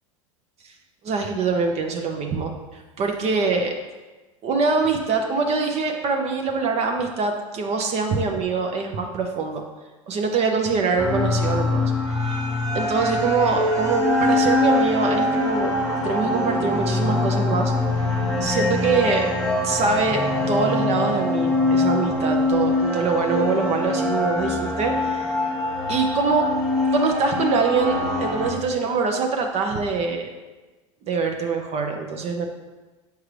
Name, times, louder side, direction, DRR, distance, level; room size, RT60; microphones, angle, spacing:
voice 1, 1.0-3.7 4.4-9.6 10.1-12.4 12.7-17.7 18.4-19.3 19.6-20.2 20.5-25.5 25.9-26.5 26.9-30.3 31.1-32.5, right 4 dB, 40° right, 3 dB, 0.7 m, -24 dB
sound 1, 11.0-28.5, left 2 dB, ahead, 1.4 m, -23 dB
6.7 x 4.7 x 3.2 m, 1.2 s
hypercardioid pair, 85°, 17 cm